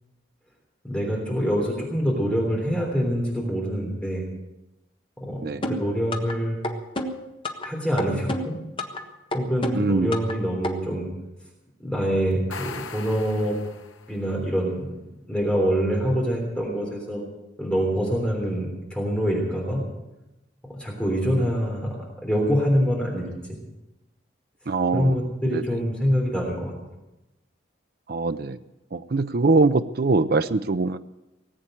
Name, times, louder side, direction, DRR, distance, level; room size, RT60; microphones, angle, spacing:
voice 1, 0.8-4.3 5.2-6.6 7.6-8.6 9.3-11.1 11.8-13.6 14.1-17.2 17.6-19.8 20.7-23.6 24.9-26.8, equal, 5° left, -1 dB, 3.4 m, -25 dB
voice 2, 5.4-5.7 9.7-10.1 24.7-25.2 25.5-25.6 28.1-28.6 28.9-31.0, right 3 dB, 50° right, 11 dB, 0.5 m, -22 dB
sound 1, 5.6-6.4 6.6-7.7 8.0-9.0 9.3-10.4 10.6-10.7, left 1 dB, 25° left, 1.3 m, -29 dB
sound 2, 12.3-14.3, left 5 dB, 90° left, 1.1 m, -39 dB
18.5 x 8.5 x 9.1 m, 0.97 s
head